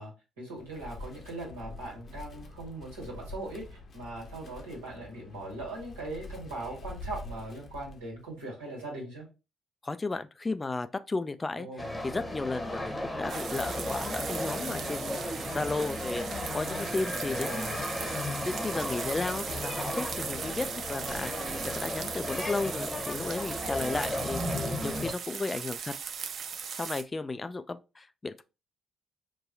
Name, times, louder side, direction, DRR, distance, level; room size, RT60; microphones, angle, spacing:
voice 1, 0.0-9.3 11.5-11.9 17.2-18.1 23.9-24.1, right 2 dB, 80° right, 1.4 m, -40 dB
Wind, 0.6-8.3, left 2 dB, 45° left, 0.7 m, -46 dB
voice 2, 9.8-11.7 12.0-16.3 16.5-17.7 18.5-21.5 21.7-25.9 26.7-28.4, left 3 dB, 25° left, 0.3 m, -34 dB
sound 1, 11.8-25.1, left 1 dB, 10° left, 0.9 m, -35 dB
sound 2, 13.3-27.0, right 6 dB, 50° right, 0.5 m, -39 dB
4.1 x 2.3 x 2.7 m
figure-of-eight pair, 45°, 0 cm